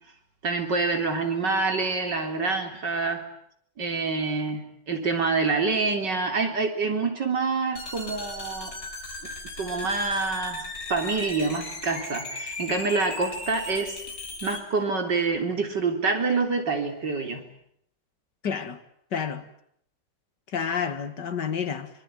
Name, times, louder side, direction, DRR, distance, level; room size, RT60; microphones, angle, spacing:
voice 1, 0.4-3.2 3.8-8.7 9.6-14.0 14.4-17.4, right 4 dB, 75° right, 4.2 m, -26 dB
sound 1, 7.8-14.6, left 2 dB, 90° left, 5.3 m, -37 dB
voice 2, 18.4-18.8 19.1-19.4 20.5-21.9, left 7 dB, 70° left, 2.5 m, -29 dB
25.0 x 24.0 x 9.3 m
omnidirectional pair, 1.9 m